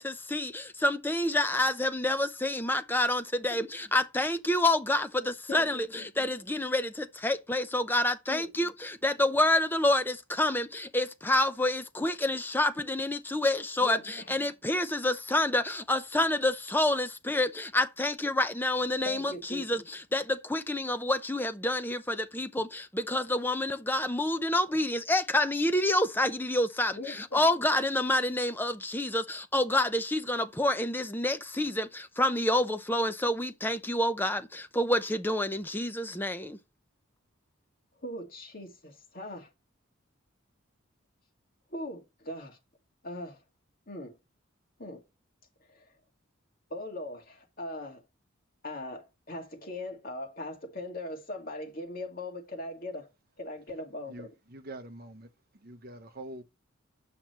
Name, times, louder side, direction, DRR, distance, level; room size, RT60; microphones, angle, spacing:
voice 1, 0.0-36.6, left 1 dB, 10° left, 0.6 m, -28 dB
voice 2, 5.5-6.1 8.3-8.5 13.8-14.2 19.0-19.8 26.9-27.4 38.0-39.5 41.7-42.6 43.0-43.4 43.9-44.2 44.8-45.0 45.7-45.9 46.7-48.0 48.6-53.1 53.4-54.3, left 1 dB, 45° left, 2.1 m, -40 dB
voice 3, 54.1-55.3 55.5-56.4, right 1 dB, 50° right, 1.1 m, -45 dB
8.3 x 5.8 x 3.0 m
head